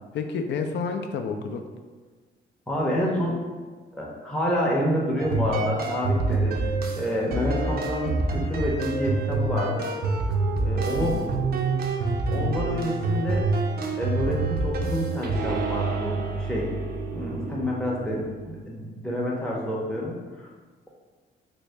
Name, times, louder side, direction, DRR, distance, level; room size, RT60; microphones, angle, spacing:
voice 1, 0.1-1.6 11.0-11.3, left 5 dB, 65° left, 5 dB, 0.4 m, -30 dB
voice 2, 2.7-3.4 3.9-6.6 6.9-9.9 10.6-11.2 12.3-13.5 14.0-16.7 17.1-20.5, equal, 5° left, -4 dB, 0.6 m, -28 dB
sound 1, 5.2-18.6, right 3 dB, 50° right, 0.5 m, -27 dB
3.1 x 2.7 x 3.3 m, 1.4 s
cardioid pair, 90°, 20 cm